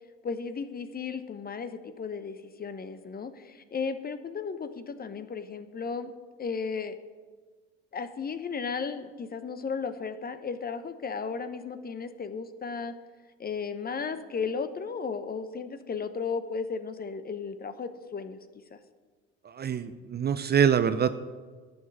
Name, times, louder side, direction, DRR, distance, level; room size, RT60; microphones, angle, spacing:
voice 1, 0.2-6.1 6.4-7.0 7.9-12.9 13.4-18.4 18.7-18.8, left 5 dB, 30° left, 11 dB, 0.9 m, -35 dB
voice 2, 19.4-21.1, right 8 dB, 30° right, 12 dB, 0.6 m, -25 dB
11.0 x 7.3 x 6.3 m, 1.4 s
hypercardioid pair, 75°, 32 cm